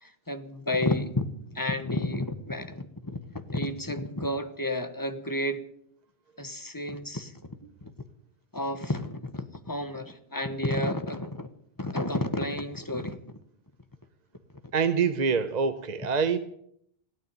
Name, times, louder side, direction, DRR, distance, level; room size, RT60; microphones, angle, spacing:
voice 1, 0.0-5.6 6.4-7.9 8.5-11.5 11.8-13.2, left 1 dB, 20° left, 1.1 m, -31 dB
voice 2, 14.7-16.4, right 5 dB, 45° right, 0.8 m, -25 dB
16.5 x 9.3 x 9.1 m
omnidirectional pair, 1.1 m